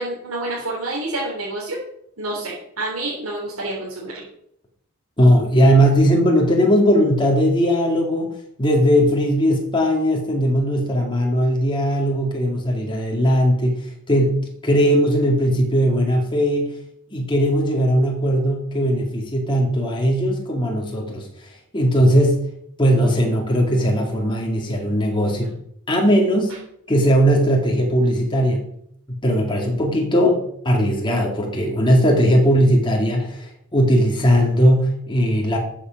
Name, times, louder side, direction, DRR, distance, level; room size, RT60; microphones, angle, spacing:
voice 1, 0.0-1.8 2.2-4.2 25.2-25.5, right 2 dB, 65° right, -5 dB, 3.4 m, -28 dB
voice 2, 5.2-8.3 8.6-16.7 17.1-22.5 22.8-25.5 25.9-26.6 26.9-28.6 29.2-35.6, equal, 20° left, 0 dB, 2.3 m, -18 dB
14.0 x 7.3 x 5.4 m, 0.72 s
head